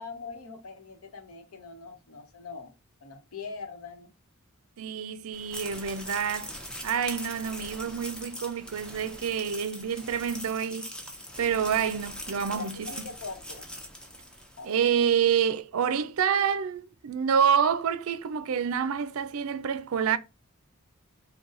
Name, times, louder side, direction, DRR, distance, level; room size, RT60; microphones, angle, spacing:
voice 1, 0.0-2.7 3.0-4.1 12.5-13.7 14.6-14.7, left 4 dB, 90° left, 0.9 m, -42 dB
voice 2, 4.8-6.5 6.8-10.9 11.4-13.1 14.6-20.2, right 7 dB, 80° right, 0.4 m, -27 dB
sound 1, 5.3-14.9, equal, 5° left, 0.6 m, -42 dB
4.0 x 2.2 x 3.8 m
head